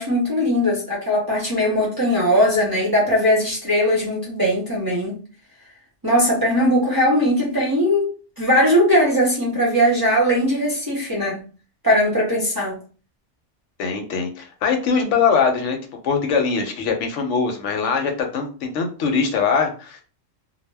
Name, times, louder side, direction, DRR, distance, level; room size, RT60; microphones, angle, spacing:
voice 1, 0.0-5.2 6.0-8.1 8.4-11.4 11.8-12.8, equal, 25° right, 0.6 m, -19 dB
voice 2, 13.8-15.8 16.0-20.0, left 5 dB, 75° left, 0.9 m, -22 dB
2.2 x 2.1 x 3.3 m
omnidirectional pair, 1.3 m